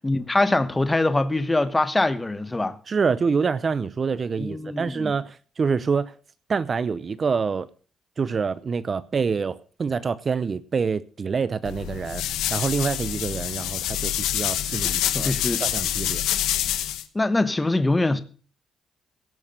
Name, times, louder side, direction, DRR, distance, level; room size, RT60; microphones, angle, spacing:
voice 1, 0.0-2.8 4.4-5.1 15.1-15.6 17.1-18.2, left 2 dB, 15° left, 1.2 m, -23 dB
voice 2, 2.9-6.1 6.5-7.7 8.2-12.2 12.5-15.3 15.6-16.2, right 5 dB, 40° right, 0.7 m, -26 dB
sound 1, 11.6-17.0, left 12 dB, 90° left, 1.1 m, -26 dB
17.0 x 6.5 x 6.6 m
cardioid pair, 90°, 0 cm